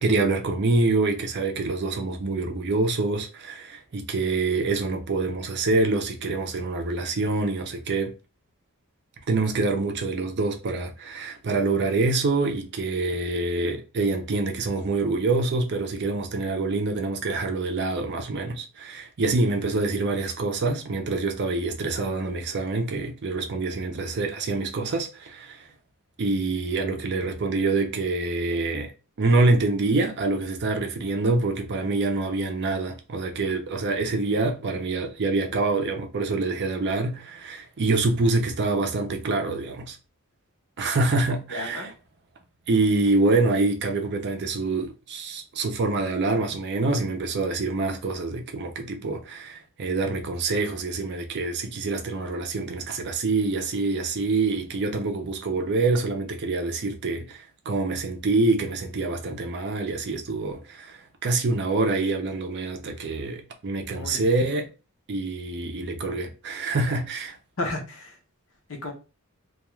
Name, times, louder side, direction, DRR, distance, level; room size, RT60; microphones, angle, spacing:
voice 1, 0.0-8.1 9.3-25.7 26.2-28.9 29.2-40.0 40.8-41.9 42.7-64.7 65.1-67.4, right 3 dB, 50° right, 0.5 m, -26 dB
voice 2, 41.5-41.9 63.9-64.2 67.6-68.2 68.7-68.9, left 2 dB, 60° left, 0.7 m, -32 dB
2.3 x 2.3 x 3.0 m
head